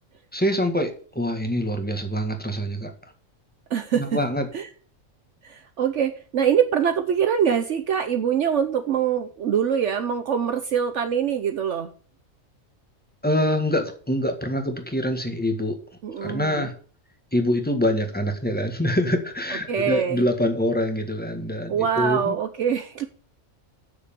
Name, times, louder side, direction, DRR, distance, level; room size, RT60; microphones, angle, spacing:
voice 1, 0.3-2.9 4.0-4.5 13.2-15.8 16.2-16.7 17.3-22.3, equal, 5° left, 5 dB, 1.6 m, -25 dB
voice 2, 3.7-4.2 4.5-4.7 5.4-11.9 16.0-16.7 19.7-20.2 21.7-23.1, right 8 dB, 65° right, 7 dB, 1.1 m, -24 dB
7.5 x 6.6 x 6.9 m, 0.42 s
omnidirectional pair, 1.4 m